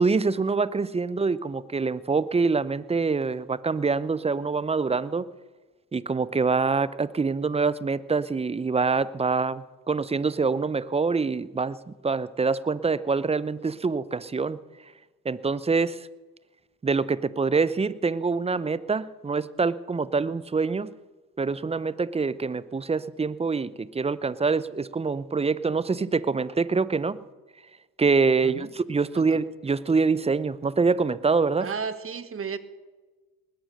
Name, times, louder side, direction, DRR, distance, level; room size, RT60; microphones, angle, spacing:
voice 1, 0.0-5.3 5.9-14.6 15.2-16.1 16.8-20.9 21.4-27.2 28.0-31.7, right 4 dB, 15° right, 18 dB, 0.7 m, -25 dB
voice 2, 31.6-32.6, right 6 dB, 30° right, 12 dB, 1.4 m, -33 dB
20.0 x 10.5 x 6.7 m, 1.2 s
hypercardioid pair, 65°, 44 cm